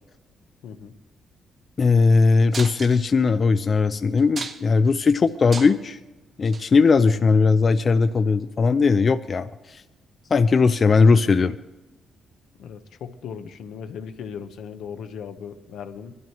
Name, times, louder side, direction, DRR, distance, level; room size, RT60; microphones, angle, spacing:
voice 1, 0.6-0.9 12.6-16.1, left 7 dB, 80° left, 8 dB, 0.9 m, -37 dB
voice 2, 1.8-6.0 6.4-9.8 10.3-11.6, left 4 dB, 35° left, 10 dB, 0.4 m, -19 dB
sound 1, 2.5-3.3 3.8-3.9 4.2-4.9 5.3-5.9 6.4-6.6 7.6-7.7, right 4 dB, 40° right, 0.9 m, -34 dB
22.0 x 12.5 x 3.1 m, 1.1 s
cardioid pair, 130°, 0 cm